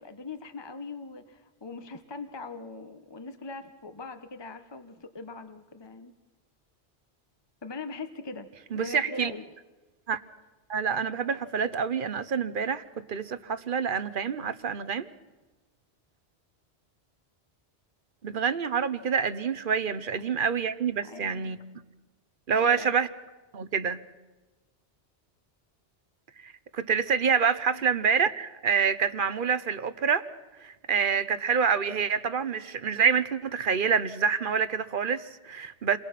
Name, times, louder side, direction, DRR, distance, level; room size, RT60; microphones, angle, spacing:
voice 1, 0.0-6.1 7.6-9.4 21.0-21.6 22.5-22.9 27.7-27.8, left 3 dB, 25° left, 8 dB, 1.0 m, -41 dB
voice 2, 8.7-9.3 10.1-10.2 10.7-15.1 18.2-21.6 22.5-23.1 23.5-24.0 26.4-30.3 30.6-36.0, right 6 dB, 55° right, 13 dB, 1.1 m, -27 dB
29.0 x 22.0 x 5.9 m, 1.2 s
omnidirectional pair, 1.1 m